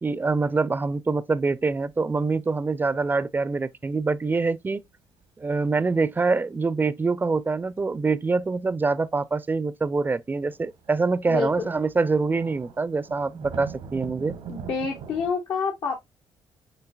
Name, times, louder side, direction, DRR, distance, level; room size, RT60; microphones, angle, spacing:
voice 1, 0.0-4.8 5.4-14.4, right 4 dB, 20° right, 0.4 m, -25 dB
sound 1, 1.4-2.0 2.3-2.6 3.0-3.2 4.8-4.9 5.2-5.6 7.6-7.7 8.0-8.1 8.4-8.5 8.7-8.8 10.3-15.3, right 6 dB, 90° right, 1.3 m, -42 dB
voice 2, 11.3-11.7 14.5-16.0, left 5 dB, 75° left, 1.1 m, -28 dB
7.3 x 2.7 x 2.3 m
supercardioid pair, 70°, 9 cm